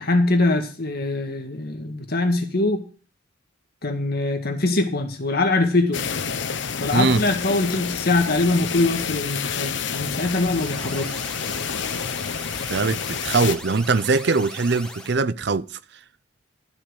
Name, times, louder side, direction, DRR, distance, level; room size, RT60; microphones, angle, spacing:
voice 1, 0.0-2.8 3.8-6.0 6.8-11.1, left 2 dB, 55° left, 1.8 m, -23 dB
sound 1, 5.9-13.6, left 6 dB, 70° left, 0.8 m, -29 dB
voice 2, 6.9-7.2 12.7-15.7, right 4 dB, 60° right, 0.6 m, -21 dB
sound 2, 10.1-15.2, left 1 dB, 5° left, 1.5 m, -39 dB
12.5 x 6.2 x 6.5 m
head